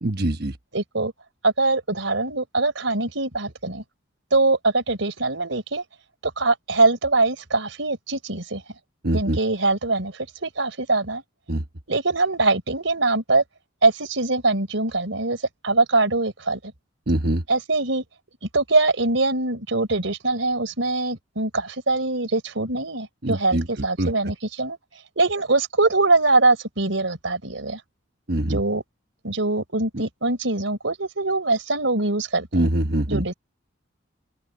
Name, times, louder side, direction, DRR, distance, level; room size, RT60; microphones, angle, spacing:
voice 1, 0.0-0.6 9.0-9.4 11.5-11.6 17.1-17.4 23.2-23.7 24.0-24.1 28.3-28.6 29.9-30.0 32.5-33.2, right 1 dB, 55° right, 1.2 m, -23 dB
voice 2, 0.7-1.1 1.4-3.8 4.3-5.8 6.2-8.6 9.1-11.2 11.9-13.4 13.8-16.6 17.5-18.0 18.5-24.8 25.2-27.8 28.5-28.8 29.2-32.7 33.1-33.3, right 3 dB, 90° right, 3.9 m, -23 dB
open air
head